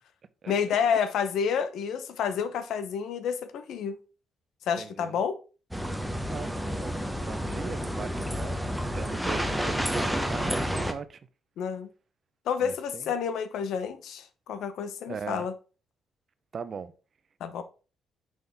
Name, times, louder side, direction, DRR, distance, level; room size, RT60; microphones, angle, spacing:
voice 1, 0.5-4.0 4.7-5.4 11.6-11.9 12.5-15.5 17.4-17.6, left 7 dB, 80° left, 0.8 m, -29 dB
voice 2, 4.8-5.2 6.3-11.2 12.6-13.1 15.1-15.5 16.5-16.9, right 6 dB, 45° right, 0.6 m, -39 dB
sound 1, 5.7-10.9, equal, ahead, 0.9 m, -30 dB
6.3 x 5.5 x 3.5 m
cardioid pair, 90°, 0 cm